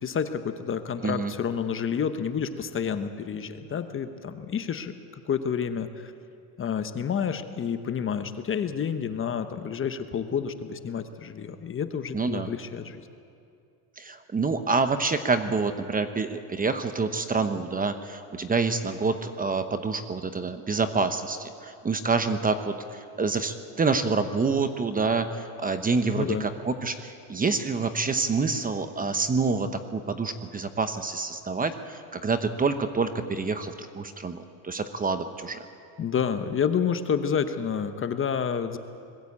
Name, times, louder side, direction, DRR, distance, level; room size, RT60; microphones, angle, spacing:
voice 1, 0.0-4.9 5.3-6.1 6.6-13.0 26.1-26.4 36.0-38.8, left 7 dB, 30° left, 9 dB, 1.0 m, -29 dB
voice 2, 12.1-12.5 14.0-35.6, right 4 dB, 20° right, 9 dB, 0.9 m, -27 dB
21.0 x 15.0 x 8.5 m, 2.5 s
supercardioid pair, 125°, 45 cm